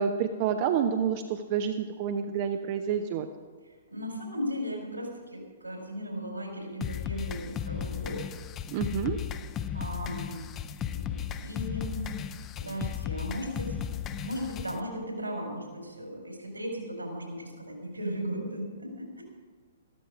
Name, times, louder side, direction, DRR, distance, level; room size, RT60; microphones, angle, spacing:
voice 1, 0.0-3.3 8.7-9.2, right 7 dB, 35° right, 6 dB, 0.7 m, -28 dB
voice 2, 3.9-8.2 9.7-10.4 10.9-12.0 12.6-13.7 14.2-19.2, equal, 85° right, 1 dB, 4.4 m, -36 dB
sound 1, 6.8-14.8, left 9 dB, 20° left, 0.6 m, -35 dB
14.0 x 13.0 x 4.9 m, 1.5 s
figure-of-eight pair, 115°, 0 cm